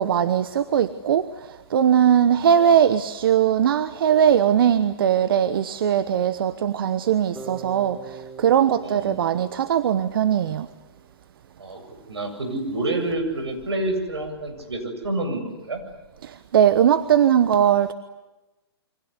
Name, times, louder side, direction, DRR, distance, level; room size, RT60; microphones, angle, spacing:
voice 1, 0.0-10.7 16.2-17.9, right 9 dB, 60° right, 13 dB, 1.2 m, -20 dB
Bass guitar, 7.3-11.3, right 4 dB, 5° right, 4.5 m, -43 dB
voice 2, 8.8-9.4 11.6-11.8 12.1-15.8, right 2 dB, 80° right, 5 dB, 7.9 m, -28 dB
29.0 x 25.0 x 8.2 m, 1.1 s
figure-of-eight pair, 125°, 14 cm